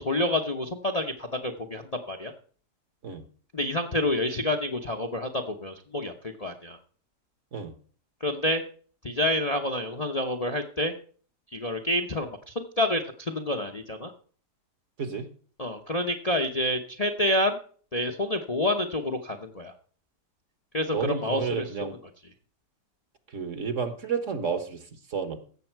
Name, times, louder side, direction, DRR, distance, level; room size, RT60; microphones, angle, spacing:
voice 1, 0.0-2.3 3.5-6.8 8.2-8.6 9.0-10.9 11.5-14.1 15.6-17.6 17.9-19.7 20.7-21.6, left 1 dB, 30° left, 4 dB, 0.8 m, -28 dB
voice 2, 15.0-15.3 20.9-22.0 23.3-25.4, right 6 dB, 50° right, 9 dB, 1.5 m, -31 dB
15.5 x 7.0 x 4.6 m, 0.43 s
omnidirectional pair, 1.8 m